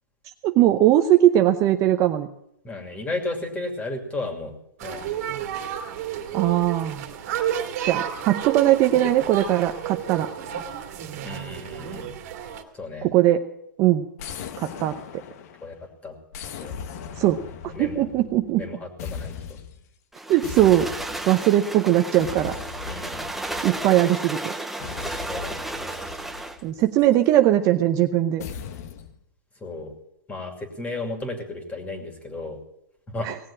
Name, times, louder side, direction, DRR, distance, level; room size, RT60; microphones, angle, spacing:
voice 1, 0.4-2.3 6.3-7.0 7.8-10.3 13.0-13.5 13.8-14.1 14.6-15.0 17.2-18.6 20.3-20.9 21.3-22.5 23.6-24.5 26.6-28.4 33.2-33.4, right 13 dB, 30° right, 7 dB, 0.8 m, -20 dB
voice 2, 2.6-4.5 4.8-5.1 11.2-12.1 12.7-13.1 15.6-15.7 16.0-16.1 16.6-16.7 17.7-18.1 18.6-19.4 22.9-23.2 25.3-26.0 29.6-29.9 30.3-32.6 33.1-33.3, left 2 dB, 15° left, 5 dB, 2.6 m, -33 dB
sound 1, 4.8-12.6, right 9 dB, 50° right, 2.1 m, -31 dB
sound 2, 14.2-15.8 16.3-18.7 19.0-19.8 20.4-21.5 22.2-24.1 24.8-27.2 28.4-29.2, left 7 dB, 50° left, 1.2 m, -38 dB
sound 3, 20.1-26.6, right 2 dB, ahead, 0.8 m, -33 dB
18.0 x 7.4 x 8.6 m, 0.78 s
hypercardioid pair, 140°, 11 cm